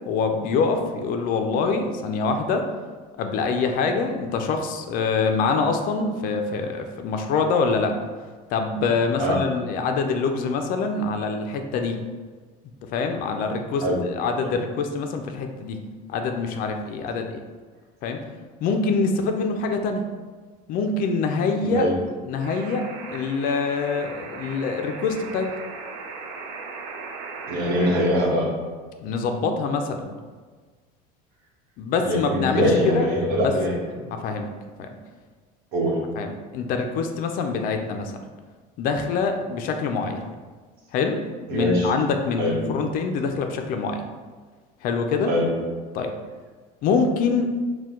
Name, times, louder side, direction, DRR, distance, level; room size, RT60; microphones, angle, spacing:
voice 1, 0.1-2.7 3.2-7.9 8.5-12.0 12.9-15.8 16.1-17.4 18.0-18.2 18.6-20.0 20.7-21.9 22.2-25.5 29.0-30.1 31.8-33.1 33.4-33.5 34.1-34.5 34.8-35.0 36.2-38.2 38.8-40.2 40.9-41.2 41.5-44.0 44.8-45.3 45.9-46.1 46.8-47.5, left 4 dB, 50° left, 5 dB, 0.4 m, -25 dB
voice 2, 21.6-21.9 27.5-28.5 32.0-33.7 35.7-35.9 41.5-41.9 42.4-42.6 45.3-45.5, equal, 55° right, -2 dB, 1.0 m, -22 dB
sound 1, 22.4-28.1, right 4 dB, 75° right, 0.6 m, -38 dB
4.4 x 2.2 x 3.6 m, 1.4 s
cardioid pair, 145°, 19 cm